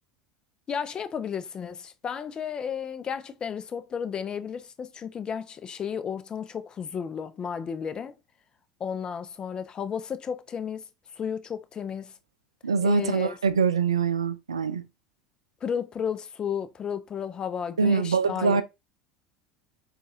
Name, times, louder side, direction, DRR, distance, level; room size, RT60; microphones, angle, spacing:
voice 1, 0.7-8.1 8.8-10.8 11.2-12.1 12.8-13.4 15.6-18.6, left 7 dB, 30° left, 0.5 m, -33 dB
voice 2, 12.6-14.8 17.8-18.6, right 5 dB, 85° right, 0.4 m, -24 dB
3.9 x 2.4 x 2.7 m
hypercardioid pair, 75°, 3 cm